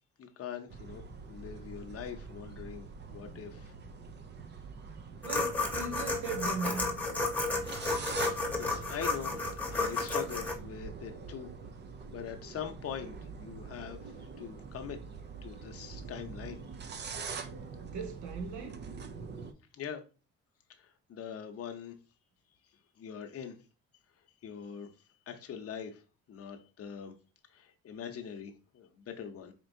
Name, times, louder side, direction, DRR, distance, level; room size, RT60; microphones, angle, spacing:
voice 1, 0.2-1.0 1.3-3.7 8.3-9.3 9.6-11.5 12.1-14.0 14.4-15.0 15.4-16.6 19.8-20.0 20.8-21.9 23.0-23.6 24.4-24.9 25.3-26.0 26.3-27.1 27.5-29.5, left 8 dB, 50° left, 0.7 m, -42 dB
sound 1, 0.7-19.5, right 5 dB, 35° right, 0.5 m, -44 dB
sound 2, 5.2-10.5, left 3 dB, 5° left, 1.0 m, -32 dB
voice 2, 5.2-6.9 17.8-18.8, right 4 dB, 75° right, 0.9 m, -38 dB
4.5 x 2.9 x 2.6 m
cardioid pair, 90°, 30 cm